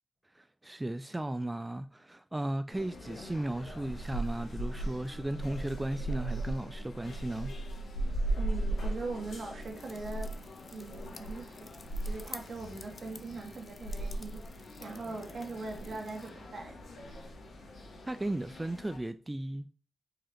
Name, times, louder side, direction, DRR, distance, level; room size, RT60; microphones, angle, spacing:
voice 1, 0.3-7.5 18.1-19.7, right 1 dB, 15° right, 0.4 m, -36 dB
sound 1, 2.7-19.0, right 1 dB, 85° left, 1.9 m, -38 dB
voice 2, 8.3-10.3 10.7-11.7 12.0-16.8, right 3 dB, 65° right, 1.7 m, -41 dB
sound 2, 9.6-16.3, left 4 dB, 50° left, 0.6 m, -52 dB
4.9 x 4.6 x 4.4 m
cardioid pair, 70°, 0 cm